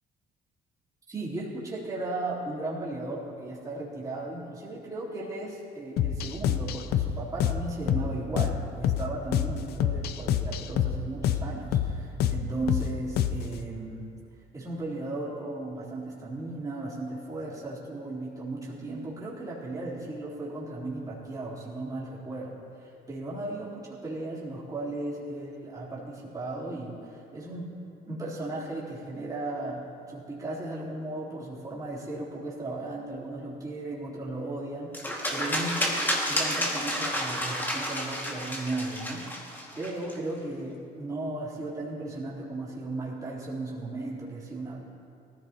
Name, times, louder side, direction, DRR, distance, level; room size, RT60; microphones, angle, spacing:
voice 1, 1.1-14.1 14.5-27.7 28.1-35.8 36.3-44.8, right 2 dB, 20° right, -7 dB, 3.6 m, -36 dB
sound 1, 6.0-13.6, left 9 dB, 70° left, 0.6 m, -28 dB
sound 2, 34.9-40.1, equal, 10° left, 2.1 m, -30 dB
19.0 x 14.5 x 3.0 m, 2.6 s
cardioid pair, 110°, 17 cm